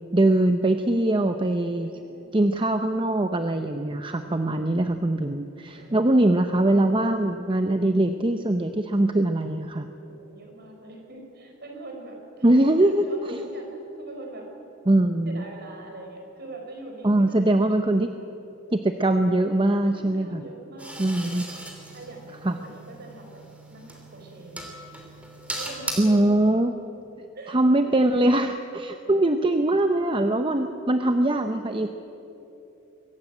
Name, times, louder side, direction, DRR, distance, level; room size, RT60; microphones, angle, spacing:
voice 1, 0.1-1.9 2.3-9.9 12.4-13.4 14.9-15.4 17.0-18.1 18.7-20.4 21.0-21.4 22.4-22.6 26.0-26.7 27.5-31.9, right 1 dB, 25° right, 7 dB, 0.7 m, -22 dB
voice 2, 1.8-2.4 5.7-6.3 10.1-13.7 14.0-14.5 15.3-18.2 19.9-21.7 21.9-23.4 23.7-24.6 25.5-26.3 27.3-28.0 30.5-30.7, right 2 dB, 50° right, 2 dB, 4.4 m, -43 dB
sound 1, 20.8-25.9, right 1 dB, 5° right, 3.0 m, -39 dB
23.0 x 15.5 x 8.9 m, 3.0 s
head